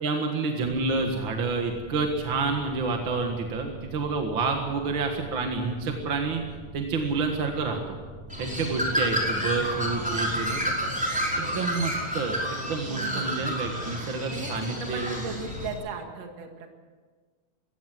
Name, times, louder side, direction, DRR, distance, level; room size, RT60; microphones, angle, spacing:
voice 1, 0.0-6.4 6.7-8.0 8.4-10.7 11.4-15.2, right 4 dB, 45° right, 3 dB, 2.2 m, -29 dB
sound 1, 0.6-13.8, right 1 dB, 85° right, 4.6 m, -45 dB
Bird, 8.3-15.7, equal, ahead, 4.8 m, -30 dB
voice 2, 9.6-10.5 10.8-11.7 12.9-13.5 14.3-16.7, right 5 dB, 60° right, 4 dB, 3.0 m, -39 dB
22.0 x 17.0 x 7.7 m, 1.4 s
omnidirectional pair, 3.3 m